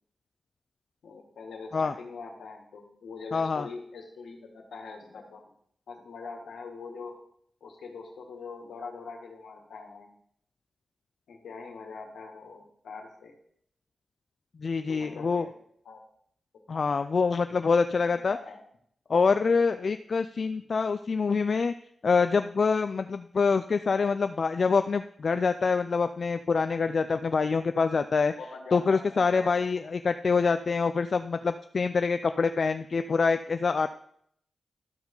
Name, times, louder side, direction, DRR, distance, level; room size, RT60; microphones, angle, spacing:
voice 1, 1.0-5.4 5.9-7.2 7.6-10.1 11.3-13.3 14.9-15.5 15.9-16.0 16.7-16.9 18.0-18.6 19.8-19.9 28.4-29.7, left 4 dB, 85° left, 2 dB, 1.7 m, -43 dB
voice 2, 3.3-3.7 14.6-15.5 16.7-18.4 19.1-21.7 22.0-28.3 28.7-33.9, left 4 dB, 60° left, 10 dB, 0.4 m, -25 dB
12.5 x 4.7 x 5.4 m, 0.68 s
supercardioid pair, 45°, 0 cm